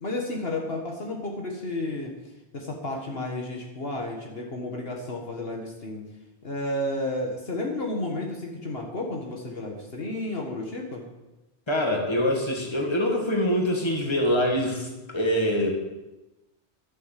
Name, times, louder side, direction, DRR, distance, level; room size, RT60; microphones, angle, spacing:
voice 1, 0.0-2.1 2.5-6.0 6.4-11.0, left 1 dB, 60° left, 0 dB, 1.8 m, -32 dB
voice 2, 11.7-15.7, equal, 25° left, 0 dB, 2.1 m, -24 dB
12.0 x 7.9 x 7.5 m, 1.0 s
omnidirectional pair, 1.2 m